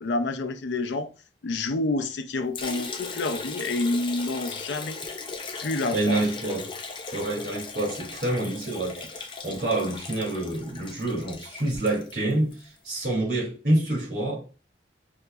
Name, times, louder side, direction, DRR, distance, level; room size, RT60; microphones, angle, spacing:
voice 1, 0.0-1.1 1.4-5.0 5.6-6.3, left 2 dB, 90° left, 0.5 m, -28 dB
Liquid, 2.5-12.6, left 4 dB, 30° left, 0.4 m, -38 dB
voice 2, 5.9-6.7 7.1-14.4, right 1 dB, 60° right, 2.2 m, -27 dB
5.6 x 2.9 x 2.3 m
head